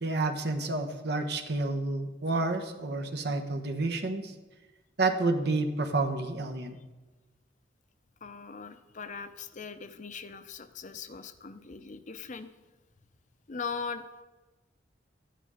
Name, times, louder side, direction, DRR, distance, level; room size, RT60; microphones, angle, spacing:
voice 1, 0.0-4.3 5.0-6.8, right 2 dB, 65° right, 5 dB, 1.2 m, -29 dB
voice 2, 8.2-12.5 13.5-14.0, left 5 dB, 45° left, 10 dB, 0.7 m, -40 dB
13.0 x 10.0 x 5.0 m, 1.2 s
head